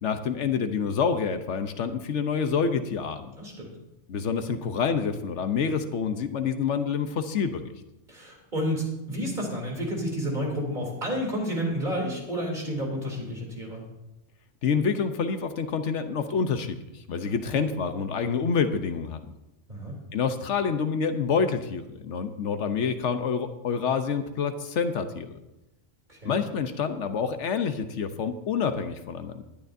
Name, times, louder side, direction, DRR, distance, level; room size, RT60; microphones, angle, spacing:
voice 1, 0.0-3.3 4.1-7.6 14.6-19.2 20.1-25.4 26.2-29.4, left 6 dB, 75° left, 8 dB, 1.1 m, -27 dB
voice 2, 3.4-3.7 8.1-13.8 17.2-17.6 19.7-19.9 26.1-26.5, equal, 40° right, -1 dB, 3.4 m, -31 dB
19.0 x 11.5 x 2.7 m, 0.93 s
omnidirectional pair, 1.2 m